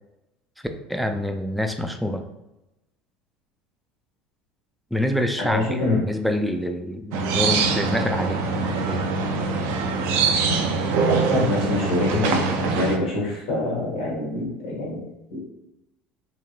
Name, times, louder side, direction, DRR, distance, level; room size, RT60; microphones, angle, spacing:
voice 1, 0.6-2.2 4.9-8.4 8.8-9.0, left 1 dB, ahead, 6 dB, 0.3 m, -26 dB
voice 2, 5.4-6.0 11.0-15.4, left 2 dB, 80° left, -5 dB, 1.3 m, -25 dB
sound 1, 7.1-13.0, right 4 dB, 65° right, 0.4 m, -23 dB
2.8 x 2.6 x 2.2 m, 0.93 s
hypercardioid pair, 75°, 4 cm